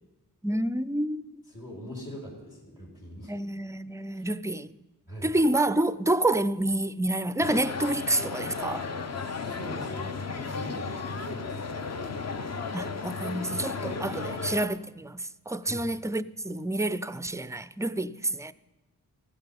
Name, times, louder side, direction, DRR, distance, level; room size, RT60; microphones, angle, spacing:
voice 1, 0.4-1.4 3.3-4.7 5.2-8.9 12.7-18.5, right 1 dB, 10° right, 0.4 m, -28 dB
voice 2, 1.5-3.3 4.1-4.3 5.1-5.4 9.1-12.1 15.6-15.8, equal, 65° left, 4.4 m, -43 dB
sound 1, 7.4-14.7, left 4 dB, 40° left, 0.8 m, -34 dB
14.0 x 8.0 x 5.3 m
cardioid pair, 45°, 39 cm